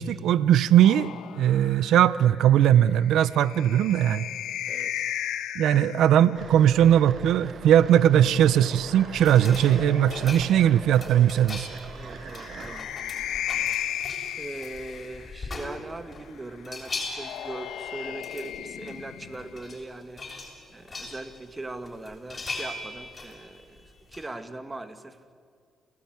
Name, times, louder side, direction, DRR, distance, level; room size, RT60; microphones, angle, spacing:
voice 1, 0.0-4.3 5.6-11.7, right 10 dB, 80° right, 17 dB, 0.7 m, -20 dB
sound 1, 0.8-6.4 7.7-10.7 12.1-15.6 16.8-19.7, left 11 dB, 80° left, 1.3 m, -36 dB
voice 2, 4.7-5.0 11.2-11.3 11.9-12.9 14.4-20.3 20.7-25.3, right 2 dB, 20° right, 9 dB, 2.2 m, -40 dB
sound 2, 6.3-12.8, right 6 dB, 55° right, 1.0 m, -42 dB
sound 3, 9.1-16.2 16.5-18.6 18.9-19.0 19.3-19.8 20.2-21.5 21.9-24.3, left 3 dB, 30° left, 7.2 m, -40 dB
29.0 x 18.5 x 9.7 m, 2.1 s
cardioid pair, 90°, 0 cm